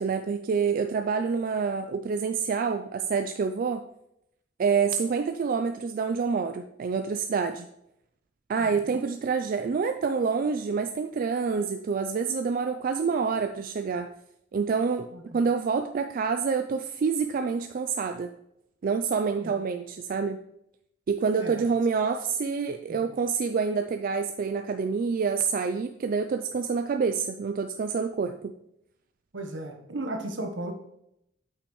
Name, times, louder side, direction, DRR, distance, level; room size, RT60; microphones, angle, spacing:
voice 1, 0.0-3.8 4.6-7.7 8.5-14.1 14.5-15.1 15.3-18.3 18.8-20.4 21.1-28.5, right 5 dB, 50° right, 7 dB, 0.3 m, -27 dB
voice 2, 29.3-30.7, right 1 dB, 75° right, 4 dB, 1.0 m, -36 dB
8.3 x 5.7 x 3.1 m, 0.78 s
head